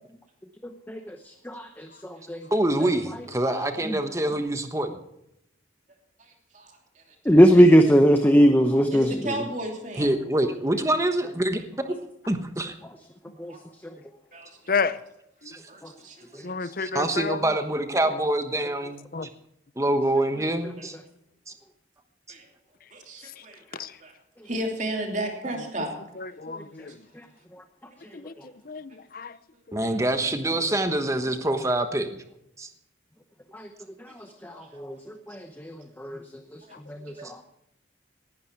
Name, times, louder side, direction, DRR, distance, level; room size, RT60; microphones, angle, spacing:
voice 1, 0.9-2.5 3.9-4.0 7.3-9.3 13.4-13.5 26.5-26.6 33.5-33.7 34.0-34.1 34.4-36.2 36.9-37.1, equal, 10° left, 0.8 m, -20 dB
voice 2, 2.5-5.0 10.0-12.0 12.3-12.7 15.4-15.6 16.4-16.5 16.8-19.0 19.8-21.0 21.5-21.6 29.7-32.1 32.6-32.7, right 1 dB, 15° right, 1.2 m, -25 dB
voice 3, 6.2-7.0 7.6-7.8 8.9-10.1 11.8-11.9 13.5-13.6 14.3-14.9 15.7-16.7 22.3-22.5 22.9-24.1 24.4-25.9 34.4-34.8 36.7-36.8 37.1-37.3, right 1 dB, 40° right, 3.0 m, -35 dB
voice 4, 14.7-15.0 16.4-17.4 19.1-19.3 23.7-23.9 26.2-27.0 28.1-28.3 28.7-29.4 29.7-29.9, left 5 dB, 50° left, 0.6 m, -30 dB
19.0 x 11.5 x 4.6 m
head